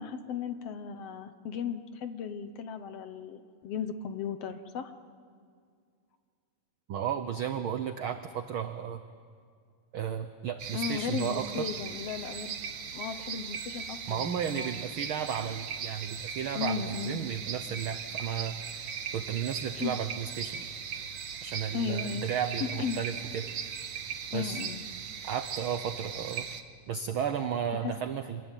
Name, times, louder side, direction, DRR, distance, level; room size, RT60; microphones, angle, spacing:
voice 1, 0.0-4.9 10.7-12.6 12.9-14.8 16.6-17.3 19.7-20.0 21.7-22.3 22.6-23.0 24.3-24.8 27.7-27.9, left 7 dB, 65° left, 9 dB, 1.8 m, -36 dB
voice 2, 6.9-9.0 9.9-11.7 14.1-18.6 19.1-20.7 21.4-23.7 24.3-24.6 25.2-26.5 26.9-28.4, right 8 dB, 75° right, 9 dB, 1.2 m, -34 dB
sound 1, 10.6-26.6, right 7 dB, 55° right, 1.4 m, -38 dB
26.5 x 20.0 x 9.1 m, 2.2 s
omnidirectional pair, 3.4 m